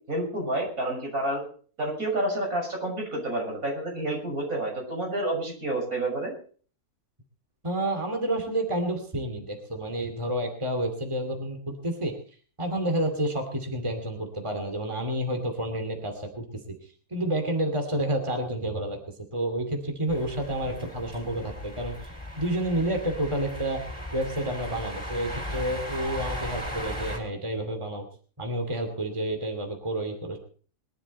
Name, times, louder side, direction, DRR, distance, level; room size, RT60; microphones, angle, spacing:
voice 1, 0.1-1.4 1.8-6.3, right 1 dB, 75° right, -1 dB, 7.0 m, -29 dB
voice 2, 7.6-12.1 12.6-16.5 17.1-19.0 19.3-21.9 22.4-23.8 24.1-28.0 28.4-30.4, right 1 dB, 20° right, 4 dB, 2.6 m, -29 dB
sound 1, 20.1-27.2, equal, 5° left, 4.8 m, -37 dB
21.5 x 12.0 x 4.3 m, 0.42 s
omnidirectional pair, 1.5 m